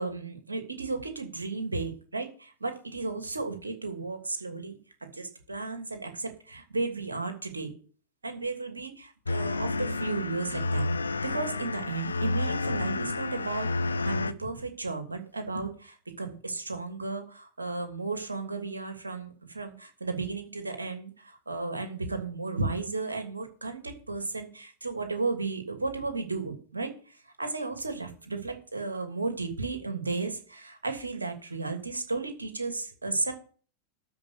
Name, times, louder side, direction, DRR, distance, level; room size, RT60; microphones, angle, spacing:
voice 1, 0.0-4.8 5.1-7.7 8.2-10.9 11.2-33.3, right 3 dB, 80° right, 6 dB, 2.7 m, -34 dB
sound 1, 9.2-14.3, left 2 dB, 75° left, 0.7 m, -30 dB
12.5 x 5.2 x 8.1 m, 0.41 s
figure-of-eight pair, 90°, 0 cm